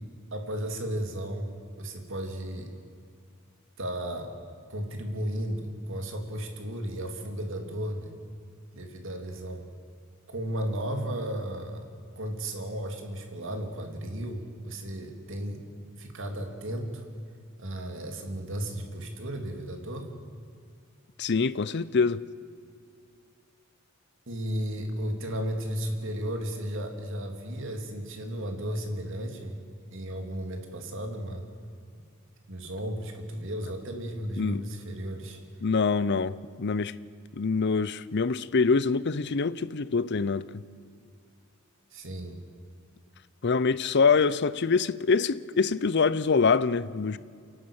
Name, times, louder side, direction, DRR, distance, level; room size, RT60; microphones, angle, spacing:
voice 1, 0.3-2.7 3.8-4.3 4.7-8.1 8.7-9.6 10.3-11.9 12.1-15.6 16.0-17.0 17.6-20.1 24.3-29.6 29.9-31.4 32.5-35.4 41.9-42.4, equal, 65° right, 2.9 m, -34 dB
voice 2, 21.2-22.2 34.4-34.6 35.6-36.9 37.4-40.5 43.4-47.2, left 4 dB, 55° left, 0.6 m, -25 dB
28.5 x 11.5 x 8.8 m
head